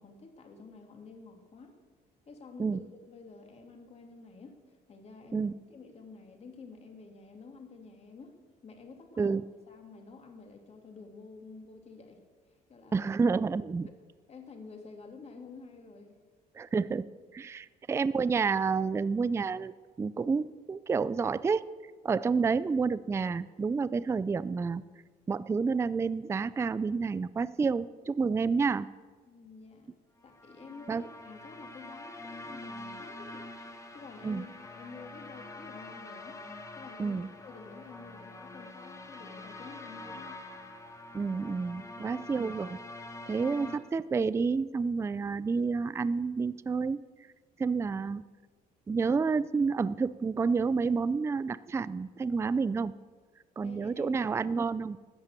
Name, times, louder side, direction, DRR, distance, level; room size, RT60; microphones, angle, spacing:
voice 1, 0.0-1.8 2.3-2.8 3.1-8.4 8.6-9.4 9.7-12.2 12.7-13.0 14.3-16.2 29.3-33.5 33.9-36.4 36.8-40.4 41.8-42.0 53.6-54.3, left 4 dB, 40° left, 4 dB, 2.5 m, -50 dB
voice 2, 12.9-13.9 16.6-17.0 17.3-21.7 22.0-24.8 25.3-28.9 30.9-31.0 34.2-34.4 37.0-37.3 41.1-42.8 43.3-47.0 47.6-48.2 48.9-52.9 53.6-55.0, right 5 dB, 15° right, 16 dB, 0.4 m, -29 dB
sound 1, 30.3-43.8, left 2 dB, 20° left, 1.5 m, -45 dB
13.0 x 8.8 x 8.1 m, 1.4 s
cardioid pair, 110°, 17 cm